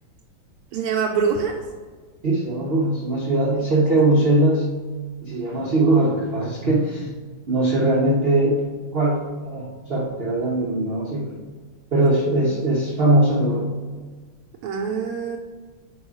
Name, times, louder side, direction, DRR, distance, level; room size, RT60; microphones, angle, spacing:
voice 1, 0.7-1.6 12.3-12.4 14.6-15.4, right 6 dB, 80° right, 0 dB, 1.5 m, -24 dB
voice 2, 2.2-4.7 5.2-7.1 7.5-8.7 8.9-11.4 11.9-13.7, right 1 dB, 60° right, -4 dB, 0.6 m, -20 dB
4.8 x 4.6 x 5.7 m, 1.5 s
omnidirectional pair, 2.4 m